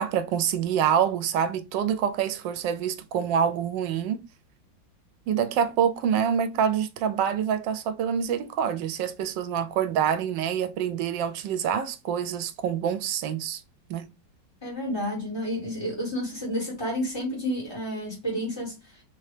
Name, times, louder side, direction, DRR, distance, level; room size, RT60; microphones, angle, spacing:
voice 1, 0.0-4.2 5.3-13.6 13.9-14.1, right 8 dB, 75° right, 1.2 m, -26 dB
voice 2, 14.6-18.8, equal, 15° left, 1.8 m, -30 dB
3.3 x 2.9 x 3.2 m
omnidirectional pair, 2.0 m